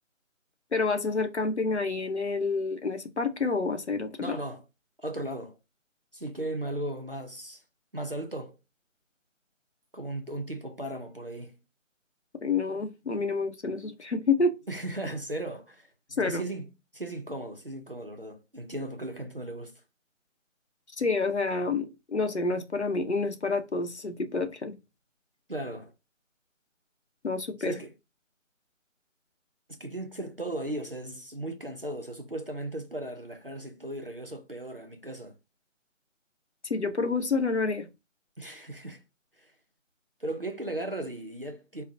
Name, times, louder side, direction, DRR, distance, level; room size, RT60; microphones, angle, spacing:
voice 1, 0.7-4.4 12.4-14.6 16.1-16.4 21.0-24.8 27.2-27.8 36.7-37.9, left 3 dB, 55° left, 0.8 m, -28 dB
voice 2, 4.2-4.7 5.0-5.6 6.1-7.6 7.9-8.6 9.9-11.6 14.7-15.9 16.2-16.7 16.9-19.7 25.5-25.9 27.6-27.9 29.7-35.4 38.4-39.0 39.4-39.5 40.2-41.8, right 1 dB, 45° right, 0.5 m, -36 dB
4.7 x 2.0 x 2.6 m
figure-of-eight pair, 165°, 39 cm